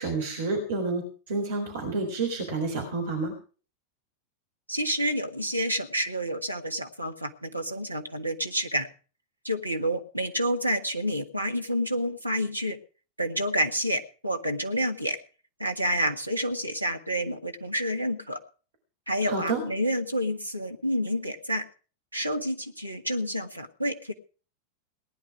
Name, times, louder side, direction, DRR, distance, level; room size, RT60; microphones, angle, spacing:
voice 1, 0.0-3.3 19.3-19.6, right 3 dB, 60° right, 2 dB, 4.0 m, -29 dB
voice 2, 4.7-8.9 9.4-12.8 13.2-15.2 15.6-18.4 19.1-21.6 22.1-24.1, equal, 85° right, 5 dB, 1.5 m, -29 dB
19.0 x 10.5 x 4.9 m, 0.38 s
figure-of-eight pair, 90°, 0 cm